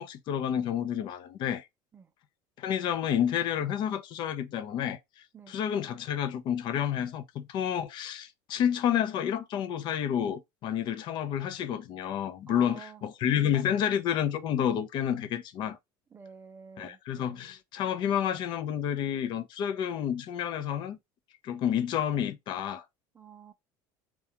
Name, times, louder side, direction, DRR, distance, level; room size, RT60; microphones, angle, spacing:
voice 1, 0.0-1.6 2.6-5.0 5.5-15.8 16.8-21.0 21.4-22.8, left 9 dB, 50° left, 0.5 m, -30 dB
voice 2, 12.5-13.0 16.1-17.0 23.1-23.5, right 6 dB, 20° right, 0.4 m, -48 dB
2.4 x 2.3 x 2.8 m
supercardioid pair, 120°, 10 cm